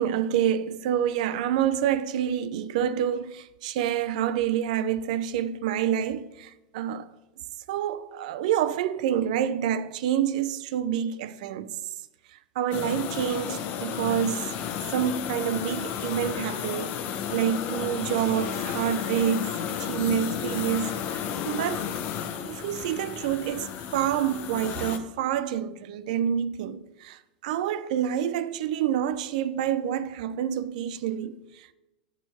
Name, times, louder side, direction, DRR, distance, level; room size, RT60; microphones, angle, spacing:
voice 1, 0.0-7.1 7.7-11.8 12.6-14.5 14.8-17.0 17.3-21.9 22.3-31.7, right 9 dB, 60° right, 0.6 m, -28 dB
sound 1, 12.7-25.0, left 8 dB, 45° left, 0.9 m, -33 dB
10.5 x 4.4 x 7.1 m
hypercardioid pair, 95°, 5 cm